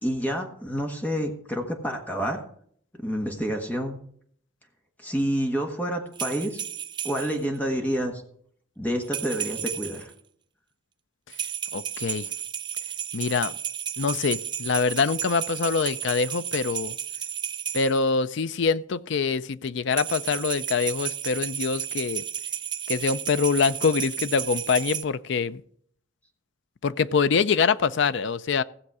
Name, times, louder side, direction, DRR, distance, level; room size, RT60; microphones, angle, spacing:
voice 1, 0.0-2.4 3.0-4.0 5.0-6.6 7.0-8.2 8.8-10.1, equal, 10° left, 3 dB, 1.4 m, -28 dB
sound 1, 6.1-7.4 9.0-10.1 11.3-18.0 19.9-25.0, right 9 dB, 25° right, 0.4 m, -33 dB
voice 2, 11.7-12.3 13.1-13.5 14.0-16.9 17.7-22.2 22.9-25.6 26.8-28.6, left 5 dB, 65° left, 15 dB, 0.4 m, -24 dB
16.0 x 7.2 x 4.8 m, 0.63 s
head